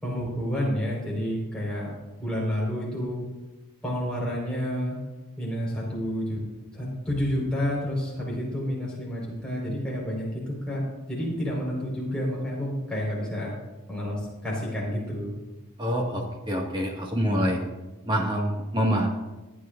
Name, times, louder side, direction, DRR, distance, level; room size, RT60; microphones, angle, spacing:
voice 1, 0.0-3.2 3.8-5.0 5.4-6.4 6.7-10.8 11.1-13.5 13.9-15.3, equal, 5° left, -5 dB, 4.8 m, -29 dB
voice 2, 15.8-17.6 18.1-19.1, equal, 20° right, 0 dB, 1.9 m, -26 dB
21.5 x 10.0 x 2.6 m, 1.1 s
head